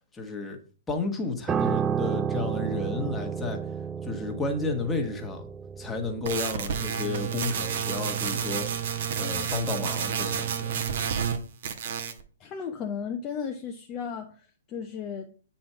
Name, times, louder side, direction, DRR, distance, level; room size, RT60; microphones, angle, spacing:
voice 1, 0.1-0.6 0.9-3.6 4.0-5.5 5.8-8.8 9.1-10.8, left 3 dB, 10° left, 1.5 m, -32 dB
Piano, 1.5-10.9 11.1-11.4, right 7 dB, 15° right, 0.4 m, -33 dB
sound 1, 6.3-11.4 11.6-12.2, right 8 dB, 50° right, 1.1 m, -30 dB
voice 2, 12.4-15.3, left 7 dB, 25° left, 0.8 m, -35 dB
8.6 x 4.3 x 5.6 m
figure-of-eight pair, 120°, 0 cm